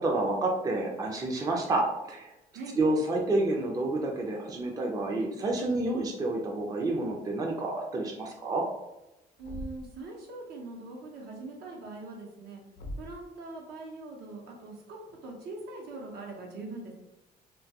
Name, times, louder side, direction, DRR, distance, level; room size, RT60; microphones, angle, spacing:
voice 1, 0.0-2.3 2.8-8.6, right 2 dB, 20° right, 0 dB, 0.4 m, -29 dB
Thump thud, 9.4-10.0 12.7-13.3, left 1 dB, 60° left, 0.4 m, -41 dB
voice 2, 9.4-12.6 13.0-16.9, right 3 dB, 70° right, -1 dB, 0.7 m, -42 dB
2.2 x 2.2 x 2.7 m, 0.93 s
cardioid pair, 110°, 17 cm